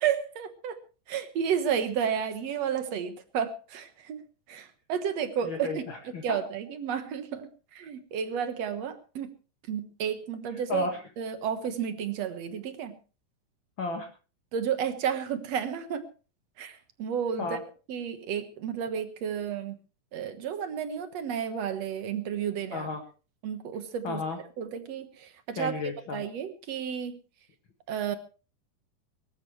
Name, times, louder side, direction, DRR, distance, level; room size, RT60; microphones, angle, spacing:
voice 1, 0.0-0.8 1.1-4.2 4.5-5.8 6.2-9.3 9.7-10.9 11.2-13.0 14.5-16.1 16.6-17.6 17.9-19.8 20.1-22.9 23.4-24.2 24.6-25.7 26.1-27.2 27.9-28.2, right 8 dB, 60° right, 9 dB, 2.2 m, -32 dB
voice 2, 5.4-6.4 10.7-11.0 13.8-14.1 17.4-17.6 22.7-23.0 24.0-24.4 25.5-26.2, left 4 dB, 45° left, 4 dB, 2.0 m, -33 dB
23.0 x 13.5 x 3.2 m, 0.35 s
omnidirectional pair, 3.9 m